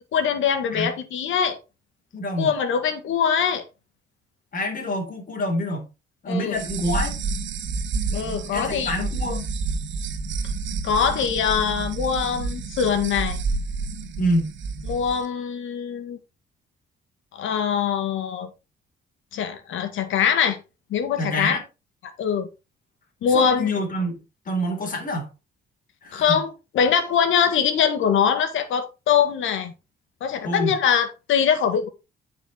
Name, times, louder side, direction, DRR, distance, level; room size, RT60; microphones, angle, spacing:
voice 1, 0.1-1.6 2.4-3.6 6.3-6.6 8.1-8.9 10.8-13.4 14.9-16.2 17.3-18.5 19.3-20.6 20.9-21.6 22.2-22.5 23.2-23.7 26.1-26.5 26.7-29.7 30.2-31.9, left 7 dB, 80° left, 1.8 m, -23 dB
voice 2, 2.1-2.5 4.5-5.9 6.2-7.1 8.5-9.5 14.2-14.5 21.2-21.6 23.3-24.2 24.5-25.3 26.0-26.4 30.4-30.8, equal, 45° left, 3.9 m, -26 dB
sound 1, 6.5-15.2, right 4 dB, 70° right, 1.9 m, -29 dB
9.4 x 5.8 x 4.3 m
cardioid pair, 90°, 20 cm